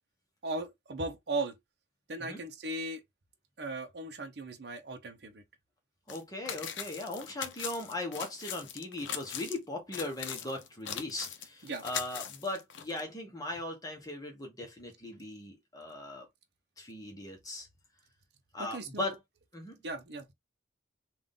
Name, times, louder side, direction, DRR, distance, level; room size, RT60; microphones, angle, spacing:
voice 1, 0.4-1.6 2.1-3.0 3.6-5.4 11.6-11.8 18.6-19.1 19.8-20.2, right 2 dB, 60° right, 0.7 m, -37 dB
sound 1, 6.1-6.2 6.5-9.6 9.9-13.0, left 9 dB, 75° left, 0.6 m, -40 dB
voice 2, 6.1-16.3 16.8-17.7 18.5-19.2 19.5-19.8, left 2 dB, 20° left, 1.1 m, -39 dB
3.7 x 2.5 x 3.6 m
head